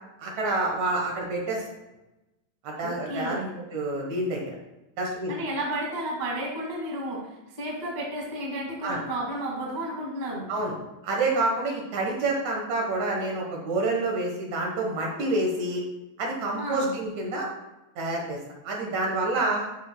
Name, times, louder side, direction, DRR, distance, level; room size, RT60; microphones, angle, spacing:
voice 1, 0.2-1.6 2.6-4.5 5.0-5.3 8.8-9.0 10.5-10.7 11.0-15.8 16.2-17.5 18.0-18.4 18.6-19.7, right 2 dB, 60° right, -1 dB, 2.3 m, -28 dB
voice 2, 2.8-3.5 5.3-10.5 16.5-16.9, right 1 dB, 20° right, -3 dB, 1.2 m, -32 dB
10.0 x 7.8 x 2.2 m, 0.98 s
omnidirectional pair, 4.0 m